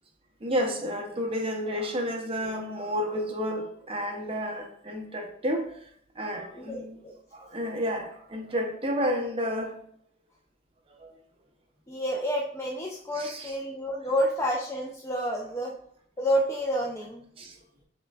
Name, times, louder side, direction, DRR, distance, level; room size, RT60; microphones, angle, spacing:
voice 1, 0.4-5.7 6.1-7.0 7.3-9.8 10.9-11.1 13.1-13.6 17.4-17.6, equal, 30° right, 0.7 m, -31 dB
voice 2, 6.5-7.2 11.9-15.7 16.2-17.3, equal, 15° left, 0.4 m, -29 dB
5.7 x 3.3 x 2.3 m
head